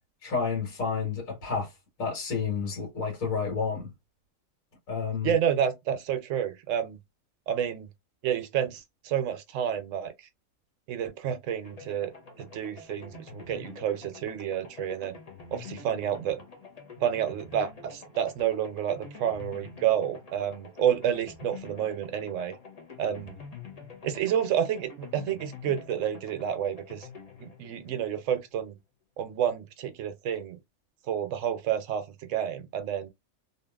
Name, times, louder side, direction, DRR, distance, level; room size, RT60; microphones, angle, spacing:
voice 1, 0.2-1.7 2.0-3.9 4.9-5.3, left 5 dB, 75° left, 1.6 m, -30 dB
voice 2, 5.2-7.0 7.5-7.9 8.2-10.1 10.9-12.1 12.4-15.2 15.5-16.4 17.0-22.5 23.0-23.4 24.0-27.1 27.4-28.7 29.2-30.6 31.1-32.0 32.3-33.1, right 9 dB, 70° right, 0.9 m, -29 dB
sound 1, 11.6-28.6, left 5 dB, 35° left, 0.6 m, -47 dB
2.8 x 2.5 x 2.3 m
omnidirectional pair, 1.4 m